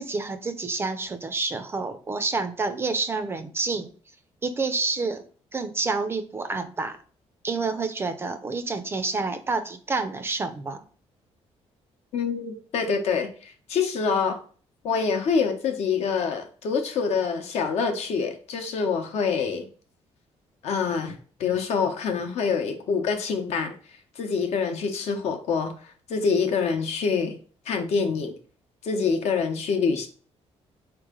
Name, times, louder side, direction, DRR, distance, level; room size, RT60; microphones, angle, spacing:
voice 1, 0.0-3.9 4.4-5.2 5.5-7.0 7.4-10.8, right 3 dB, 20° right, 9 dB, 0.4 m, -28 dB
voice 2, 12.1-14.4 14.8-19.7 20.6-23.7 24.2-27.4 27.7-28.4 28.8-30.1, left 5 dB, 70° left, 4 dB, 0.8 m, -26 dB
4.5 x 3.0 x 3.6 m, 0.42 s
cardioid pair, 165°, 11 cm